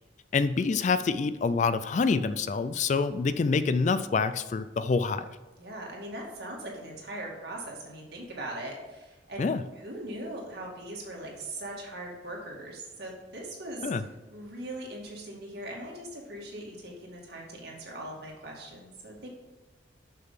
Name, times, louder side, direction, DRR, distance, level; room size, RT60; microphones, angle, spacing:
voice 1, 0.3-5.4 9.4-9.6 13.8-14.0, left 4 dB, 40° left, 13 dB, 0.3 m, -26 dB
voice 2, 5.6-9.4 9.8-13.9 14.3-19.3, right 1 dB, 55° right, -2 dB, 2.2 m, -40 dB
6.8 x 6.6 x 5.8 m, 1.2 s
head